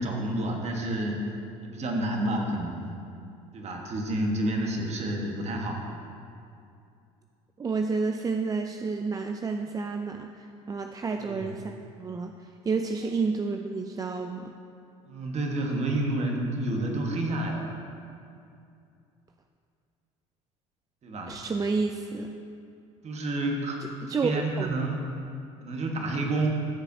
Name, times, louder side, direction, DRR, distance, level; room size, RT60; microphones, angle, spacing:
voice 1, 0.0-1.3 1.6-2.9 3.5-5.8 11.2-11.5 15.1-17.7 21.0-21.4 23.0-25.1 25.6-26.7, right 1 dB, 40° right, 1 dB, 1.5 m, -29 dB
voice 2, 7.6-11.7 12.0-12.3 12.6-14.5 21.3-22.4 24.1-24.3 24.6-24.7, right 4 dB, 20° right, 5 dB, 0.4 m, -30 dB
12.5 x 6.8 x 2.8 m, 2.5 s
hypercardioid pair, 75°, 17 cm